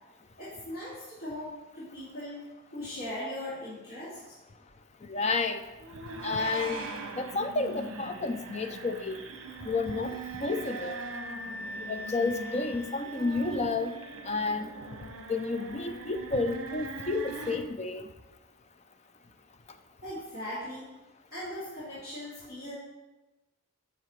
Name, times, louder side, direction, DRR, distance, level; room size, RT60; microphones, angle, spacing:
voice 1, 0.4-2.4 2.7-4.4 20.0-20.9 21.3-22.7, left 1 dB, 75° left, -11 dB, 2.7 m, -39 dB
voice 2, 5.1-5.6 6.2-6.8 7.2-9.2 9.6-10.2 10.4-11.0 11.8-13.9 14.2-14.7 15.3-18.1, left 3 dB, 30° left, 8 dB, 0.4 m, -31 dB
sound 1, 5.8-17.6, right 3 dB, 70° right, 1.1 m, -41 dB
sound 2, 8.1-14.9, equal, 45° right, 2.1 m, -45 dB
10.5 x 6.9 x 3.2 m, 1.1 s
head